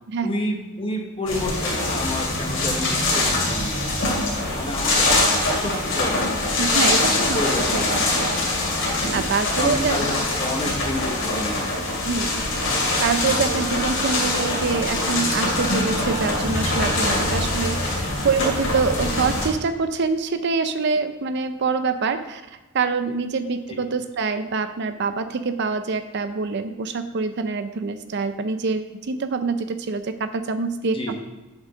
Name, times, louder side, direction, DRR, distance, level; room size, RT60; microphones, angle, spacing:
voice 1, 0.2-3.8 4.5-6.9 7.3-8.2 8.9-9.2 9.6-11.6 30.9-31.1, left 1 dB, 25° left, 1 dB, 1.3 m, -30 dB
sound 1, 1.3-19.5, left 2 dB, 65° left, 2.5 m, -23 dB
voice 2, 6.6-7.4 9.1-9.9 12.0-12.4 13.0-22.4 22.7-31.1, right 4 dB, 55° right, 10 dB, 0.5 m, -25 dB
7.3 x 6.1 x 5.5 m, 1.1 s
head